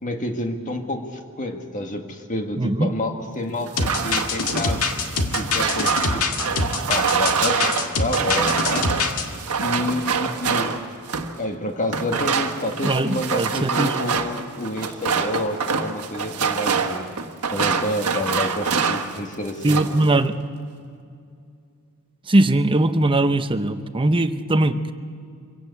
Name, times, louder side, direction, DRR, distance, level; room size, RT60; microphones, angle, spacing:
voice 1, 0.0-6.3 6.9-8.9 9.6-10.9 11.4-17.1 17.5-19.8, left 1 dB, 35° left, 4 dB, 1.9 m, -29 dB
voice 2, 2.6-2.9 12.8-13.9 19.6-20.4 22.3-24.9, right 2 dB, 25° right, 10 dB, 0.8 m, -20 dB
sound 1, 3.7-11.4 11.9-19.2 19.5-20.0, right 5 dB, 85° right, 1.5 m, -25 dB
sound 2, 3.8-9.2, left 4 dB, 75° left, 1.9 m, -24 dB
24.5 x 16.5 x 8.3 m, 2.4 s
head